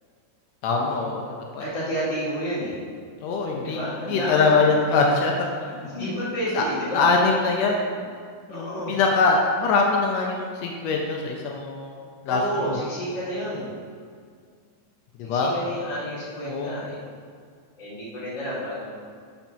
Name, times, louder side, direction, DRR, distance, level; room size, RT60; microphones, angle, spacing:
voice 1, 0.6-1.6 3.2-3.8 4.1-5.9 6.5-6.6 6.9-8.0 8.5-12.8 15.2-15.6 16.4-16.7, left 3 dB, 85° left, 0 dB, 1.5 m, -23 dB
voice 2, 1.6-2.8 3.6-4.6 5.9-7.1 8.5-9.0 12.3-13.7 15.3-17.0 17.8-18.9, equal, 35° left, -9 dB, 2.9 m, -30 dB
6.9 x 5.9 x 5.9 m, 2.1 s
omnidirectional pair, 4.0 m